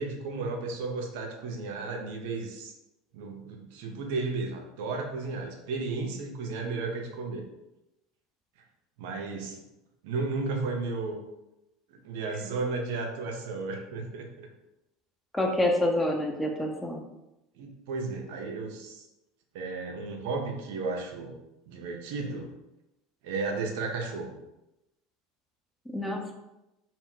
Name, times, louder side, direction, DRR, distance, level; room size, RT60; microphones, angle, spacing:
voice 1, 0.0-2.7 3.1-7.5 9.0-9.6 10.0-11.2 12.0-14.5 17.6-19.0 19.5-21.4 21.7-22.5 23.2-24.4, right 3 dB, 60° right, 2 dB, 0.4 m, -34 dB
voice 2, 15.3-17.0 25.9-26.3, left 1 dB, 10° left, 2 dB, 0.5 m, -27 dB
2.0 x 2.0 x 3.6 m, 0.93 s
figure-of-eight pair, 70°, 0 cm